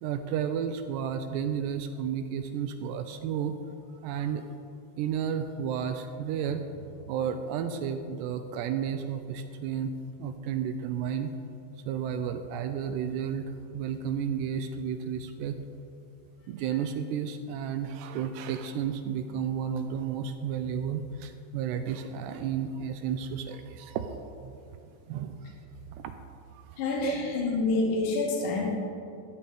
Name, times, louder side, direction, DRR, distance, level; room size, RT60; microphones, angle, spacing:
voice 1, 0.0-3.5 4.0-4.5 5.0-9.9 10.2-11.3 11.9-15.6 16.5-24.1 24.4-24.5 25.1-25.5 25.9-26.0 26.5-27.2, right 8 dB, 85° right, 8 dB, 2.6 m, -32 dB
voice 2, 26.8-28.8, left 3 dB, 55° left, -3 dB, 3.1 m, -27 dB
13.0 x 13.0 x 3.6 m, 2.6 s
omnidirectional pair, 5.0 m